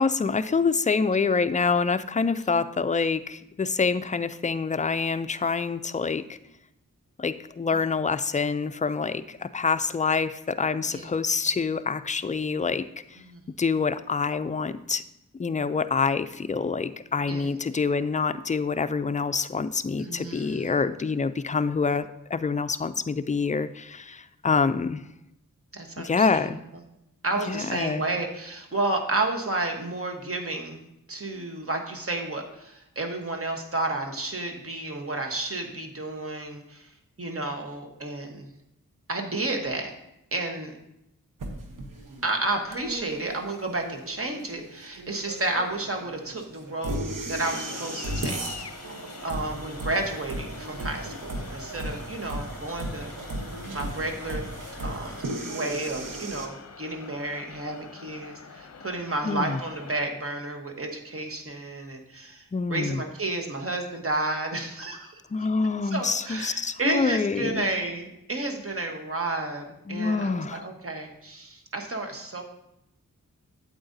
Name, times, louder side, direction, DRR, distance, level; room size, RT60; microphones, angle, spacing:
voice 1, 0.0-6.2 7.2-12.8 13.6-15.0 15.4-25.0 26.0-26.6 27.5-28.0 59.2-59.6 62.5-63.0 65.3-67.7 69.9-70.6, left 4 dB, 25° left, 12 dB, 0.3 m, -26 dB
voice 2, 20.0-20.7 25.7-26.5 27.2-36.9 37.2-38.5 39.1-39.9 40.3-40.7 42.2-48.4 49.2-53.1 53.7-54.5 54.8-62.4 62.7-65.2 65.8-72.4, right 2 dB, 40° right, 2 dB, 1.2 m, -31 dB
sound 1, 41.4-56.5, right 1 dB, 70° right, 1.0 m, -36 dB
sound 2, 47.4-60.0, left 5 dB, 50° left, 0.7 m, -44 dB
8.7 x 7.8 x 2.7 m, 0.83 s
cardioid pair, 50°, 34 cm